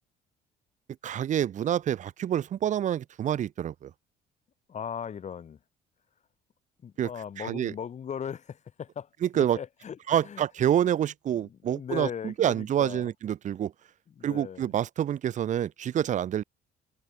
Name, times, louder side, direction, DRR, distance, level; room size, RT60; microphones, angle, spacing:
voice 1, 1.0-3.9 7.0-7.1 7.4-7.7 9.2-9.6 10.1-13.7 14.2-16.4, right 10 dB, 45° right, 0.8 m, -27 dB
voice 2, 4.7-5.6 6.8-10.4 11.3-13.1 14.1-14.7, left 8 dB, 45° left, 5.6 m, -38 dB
cardioid pair, 110°, 17 cm